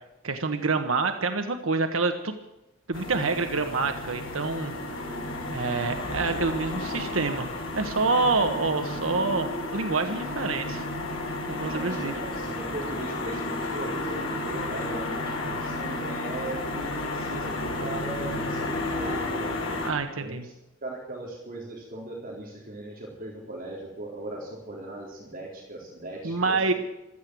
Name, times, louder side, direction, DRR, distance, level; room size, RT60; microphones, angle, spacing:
voice 1, 0.2-2.3 2.9-5.1 5.5-7.5 7.8-10.9 11.5-12.1 19.8-20.4 26.2-26.7, right 3 dB, 90° right, 6 dB, 1.3 m, -27 dB
sound 1, 2.9-19.9, left 2 dB, 80° left, 4.5 m, -32 dB
voice 2, 11.6-19.5 20.2-20.5 20.8-26.7, right 2 dB, 45° right, -2 dB, 3.9 m, -39 dB
16.0 x 13.5 x 6.3 m, 0.93 s
head